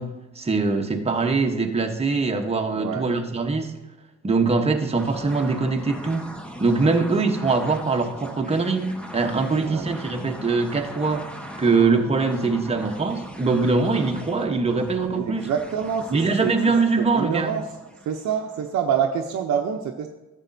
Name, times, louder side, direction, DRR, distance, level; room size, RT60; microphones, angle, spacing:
voice 1, 0.0-3.7 4.2-6.3 6.6-8.9 9.1-11.3 11.6-15.5 16.1-17.6, right 4 dB, 20° right, 3 dB, 1.0 m, -22 dB
voice 2, 2.7-3.1 9.5-9.9 15.1-16.6 17.0-17.6 18.1-20.1, right 8 dB, 70° right, 2 dB, 0.7 m, -26 dB
sound 1, 5.0-18.7, equal, 5° left, 0.9 m, -40 dB
11.0 x 7.4 x 2.7 m, 1.1 s
cardioid pair, 90°, 30 cm